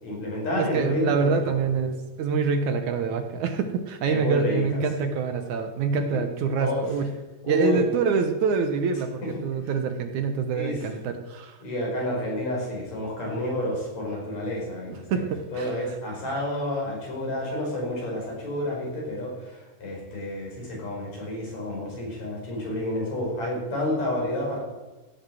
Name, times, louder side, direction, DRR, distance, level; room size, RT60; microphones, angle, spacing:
voice 1, 0.0-1.5 4.0-5.0 6.0-6.2 6.6-6.8 7.4-7.8 10.5-10.8 11.6-15.2 15.5-24.6, left 1 dB, 55° left, -2 dB, 6.3 m, -30 dB
voice 2, 0.6-7.1 7.5-11.6 15.1-16.0, right 5 dB, 70° right, 7 dB, 2.4 m, -26 dB
16.0 x 8.7 x 7.8 m, 1.2 s
omnidirectional pair, 3.8 m